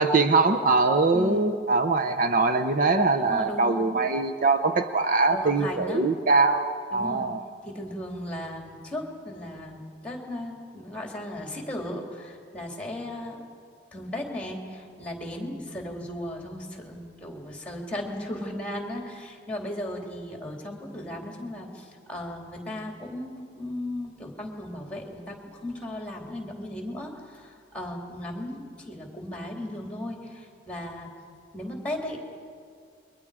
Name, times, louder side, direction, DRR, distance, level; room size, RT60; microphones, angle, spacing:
voice 1, 0.0-7.4, right 3 dB, 50° right, 8 dB, 0.7 m, -22 dB
voice 2, 1.1-1.5 3.2-3.9 5.3-6.1 6.9-7.3 7.6-13.4 13.9-31.1 31.5-32.2, left 1 dB, 5° left, 1 dB, 2.9 m, -36 dB
29.0 x 22.5 x 4.9 m, 2.2 s
head